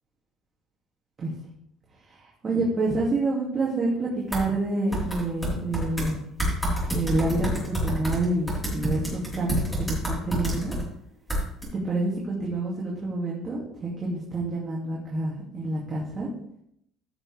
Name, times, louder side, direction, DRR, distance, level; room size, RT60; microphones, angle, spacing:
voice 1, 2.4-6.2 6.9-10.7 11.8-16.3, right 2 dB, 25° right, -4 dB, 2.3 m, -28 dB
sound 1, 4.3-4.4 4.9-6.1 6.4-10.8 11.3-11.6, right 1 dB, 5° left, 3.9 m, -27 dB
14.5 x 6.5 x 3.4 m, 0.74 s
cardioid pair, 145°, 0 cm